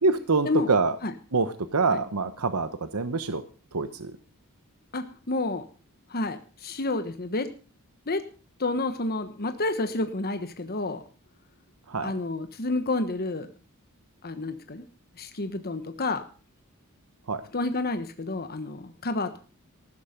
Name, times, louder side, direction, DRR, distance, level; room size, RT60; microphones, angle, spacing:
voice 1, 0.0-1.0 1.3-3.4 3.7-4.1 11.9-12.1 17.3-17.4, right 4 dB, 85° right, 11 dB, 1.1 m, -25 dB
voice 2, 4.9-5.6 6.1-7.5 8.1-8.2 8.6-11.0 12.0-13.5 14.2-14.8 15.2-16.2 17.5-19.4, left 2 dB, 45° left, 8 dB, 1.2 m, -29 dB
15.0 x 12.5 x 5.2 m, 0.38 s
head